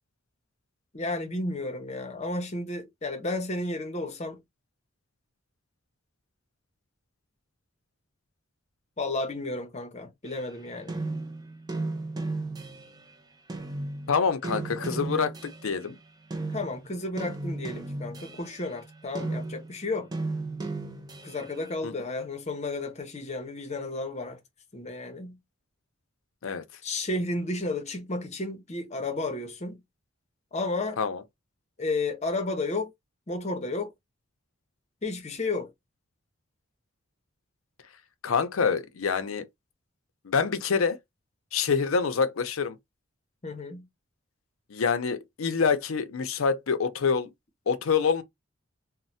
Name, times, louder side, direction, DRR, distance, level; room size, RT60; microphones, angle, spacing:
voice 1, 0.9-4.4 9.0-11.0 16.5-20.1 21.2-24.4 24.7-25.4 26.8-29.8 30.5-31.0 31.8-32.9 33.3-33.9 35.0-35.7 43.4-43.9, left 2 dB, 30° left, 0.7 m, -32 dB
sound 1, 10.3-13.1 13.5-15.9 16.3-21.6, right 2 dB, 20° right, 0.4 m, -35 dB
voice 2, 14.1-16.0 21.8-21.9 26.4-26.6 31.0-31.2 38.2-39.5 40.2-41.0 41.5-42.8 44.7-47.3 47.7-48.2, left 5 dB, 80° left, 0.5 m, -26 dB
3.1 x 2.1 x 2.7 m
head